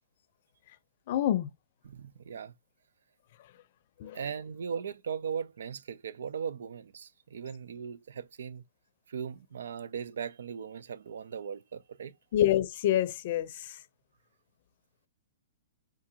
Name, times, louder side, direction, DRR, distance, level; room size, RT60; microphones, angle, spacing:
voice 1, 1.1-1.5 4.0-4.2 12.3-13.8, left 12 dB, 45° left, 0.5 m, -27 dB
voice 2, 1.8-2.5 4.1-8.6 9.1-12.1, right 7 dB, 80° right, 0.4 m, -38 dB
3.8 x 2.4 x 2.8 m
hypercardioid pair, 155°, 0 cm